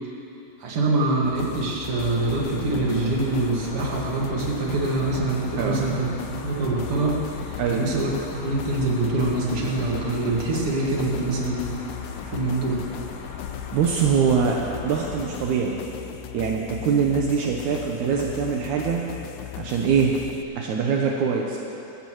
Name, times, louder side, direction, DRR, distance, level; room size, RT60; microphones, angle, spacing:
voice 1, 0.6-7.2 7.4-11.7 12.3-12.8, right 2 dB, 45° right, -3 dB, 2.1 m, -25 dB
sound 1, 1.2-20.4, left 12 dB, 80° left, 2.0 m, -38 dB
sound 2, 1.9-15.3, left 4 dB, 65° left, 1.8 m, -39 dB
voice 2, 13.7-15.8 16.3-19.1 19.6-20.2 20.6-21.6, right 6 dB, 80° right, -1 dB, 1.7 m, -23 dB
22.0 x 15.0 x 3.1 m, 2.9 s
omnidirectional pair, 4.6 m